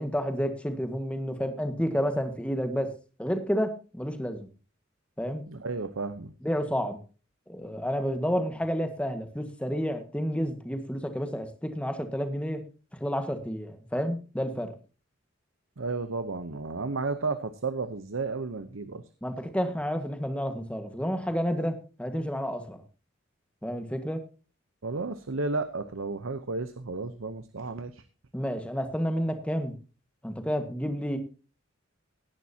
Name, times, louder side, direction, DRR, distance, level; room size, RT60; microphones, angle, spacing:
voice 1, 0.0-2.9 3.2-4.5 5.2-5.4 6.4-7.0 7.5-12.6 13.0-14.7 19.2-22.8 23.6-24.2 28.3-29.7 30.2-31.2, equal, 5° left, 7 dB, 1.6 m, -30 dB
voice 2, 5.5-6.3 15.8-19.0 24.8-28.0, right 3 dB, 80° right, 11 dB, 0.9 m, -33 dB
17.5 x 10.5 x 2.8 m, 0.35 s
head